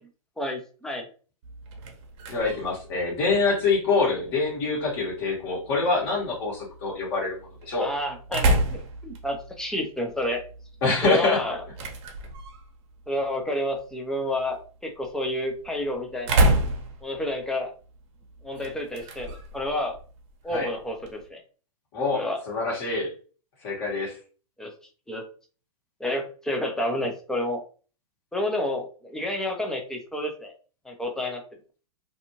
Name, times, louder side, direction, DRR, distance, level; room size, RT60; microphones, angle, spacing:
voice 1, 0.4-1.1 7.7-10.4 11.0-11.6 13.1-16.5 17.0-17.7 18.4-20.0 20.4-21.4 22.1-22.4 24.6-24.7 25.1-25.2 26.0-27.6 28.3-30.5 30.8-31.4, left 1 dB, 5° left, 2 dB, 0.6 m, -30 dB
sound 1, 1.4-21.3, right 1 dB, 55° right, 0.8 m, -32 dB
voice 2, 2.3-7.4 7.6-7.9 10.8-11.6 20.5-20.7 21.9-23.1 23.6-24.2, left 4 dB, 50° left, -3 dB, 1.4 m, -25 dB
2.7 x 2.5 x 2.9 m, 0.38 s
hypercardioid pair, 110°, 18 cm